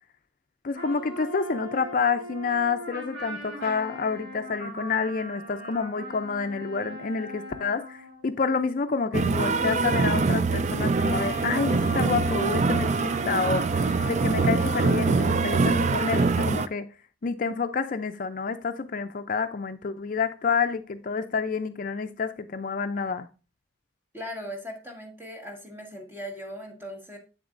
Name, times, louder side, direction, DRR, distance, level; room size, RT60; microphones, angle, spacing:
voice 1, 0.6-16.9 17.2-23.3, left 5 dB, 45° left, 0.4 m, -28 dB
sound 1, 0.7-8.2 9.4-9.7 11.0-16.3, right 1 dB, 65° right, 4.3 m, -38 dB
sound 2, 9.1-16.7, right 4 dB, 40° right, 0.4 m, -24 dB
voice 2, 24.1-27.2, equal, 10° right, 1.6 m, -39 dB
8.0 x 7.0 x 2.5 m
head